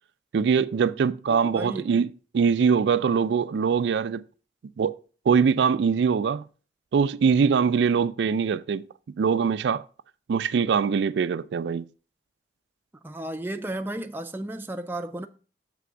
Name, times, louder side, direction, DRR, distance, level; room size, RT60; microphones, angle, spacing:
voice 1, 0.3-4.2 4.8-5.0 5.3-6.4 6.9-8.8 9.2-9.8 10.3-11.9, right 6 dB, 85° right, 0.3 m, -22 dB
voice 2, 1.3-2.0 13.0-15.3, right 1 dB, 10° right, 0.4 m, -34 dB
6.8 x 3.4 x 6.1 m
head